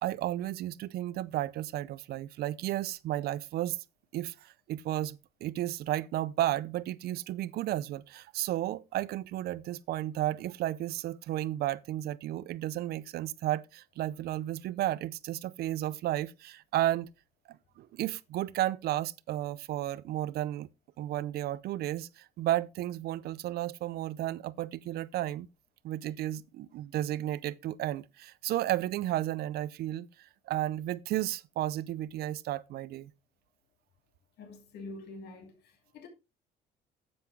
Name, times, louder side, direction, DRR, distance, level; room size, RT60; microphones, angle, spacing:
voice 1, 0.0-3.8 4.1-17.1 17.5-20.7 21.0-25.5 25.8-33.1, right 14 dB, 70° right, 0.6 m, -33 dB
voice 2, 34.4-36.1, left 2 dB, 75° left, 2.6 m, -46 dB
10.5 x 7.9 x 3.5 m
cardioid pair, 110°, 17 cm